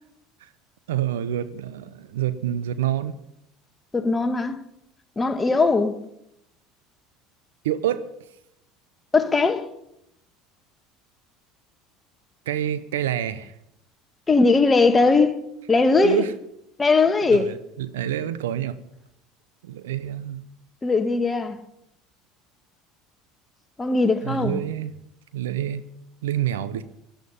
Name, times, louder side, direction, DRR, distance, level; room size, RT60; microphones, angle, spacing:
voice 1, 0.9-3.1 7.6-8.0 12.5-13.5 16.0-16.3 17.3-18.8 19.6-20.4 24.2-24.9 25.3-25.8 26.2-26.8, right 11 dB, 85° right, 0.8 m, -27 dB
voice 2, 3.9-4.6 5.2-6.0 9.1-9.7 14.3-15.4 15.7-16.2 16.8-17.5 20.8-21.6 23.8-24.6, left 3 dB, 20° left, 1.6 m, -19 dB
17.0 x 11.5 x 5.5 m
hypercardioid pair, 80°, 0 cm